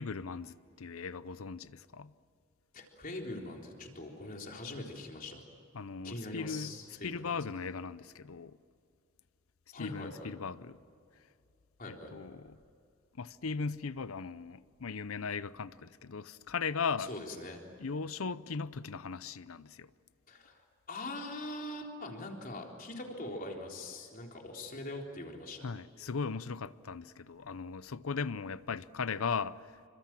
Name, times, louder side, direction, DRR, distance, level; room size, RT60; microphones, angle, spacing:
voice 1, 0.0-2.1 5.7-6.7 7.0-8.5 9.8-10.8 11.9-12.6 13.2-17.1 17.8-19.9 25.6-29.6, left 5 dB, 80° left, 0.7 m, -38 dB
voice 2, 2.7-5.4 6.0-7.5 9.7-10.3 11.8-12.1 17.0-17.6 20.3-20.6 20.9-25.6, left 2 dB, 40° left, 3.8 m, -42 dB
27.5 x 25.5 x 7.5 m
head